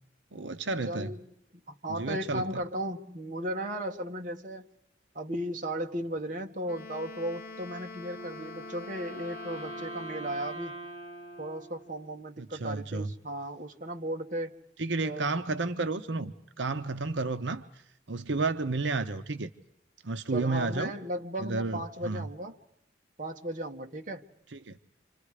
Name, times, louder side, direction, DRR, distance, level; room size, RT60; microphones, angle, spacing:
voice 1, 0.3-1.1 2.0-2.6 12.4-13.1 14.8-17.7 18.1-19.5 20.0-20.9 21.4-22.2 24.5-24.8, right 3 dB, 80° right, 0.9 m, -31 dB
voice 2, 0.9-1.3 1.7-4.7 5.1-10.8 11.4-14.5 15.0-15.3 20.3-22.6 23.2-24.3, right 1 dB, 45° right, 1.6 m, -36 dB
Wind instrument woodwind instrument, 6.6-10.6, left 3 dB, 50° left, 1.5 m, -45 dB
Wind instrument woodwind instrument 2, 8.1-12.3, right 1 dB, 25° right, 3.7 m, -43 dB
29.0 x 26.0 x 4.9 m
head